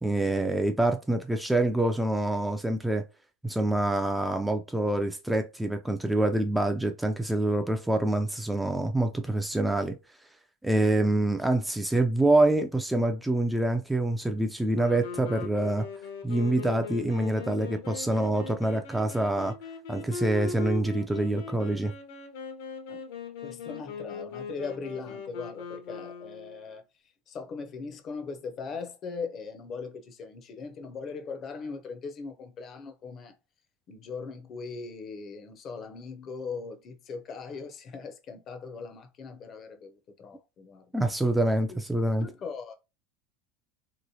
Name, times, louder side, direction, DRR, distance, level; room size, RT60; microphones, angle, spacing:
voice 1, 0.0-3.0 3.4-10.0 10.6-15.8 16.2-19.5 19.9-21.9 40.9-42.3, right 1 dB, 5° right, 0.3 m, -26 dB
sound 1, 14.7-26.6, left 5 dB, 80° left, 0.9 m, -40 dB
voice 2, 23.4-26.8 27.3-33.3 33.9-40.9 41.7-41.8 42.2-42.7, left 4 dB, 35° left, 0.6 m, -39 dB
3.0 x 2.9 x 2.7 m
supercardioid pair, 125°, 0 cm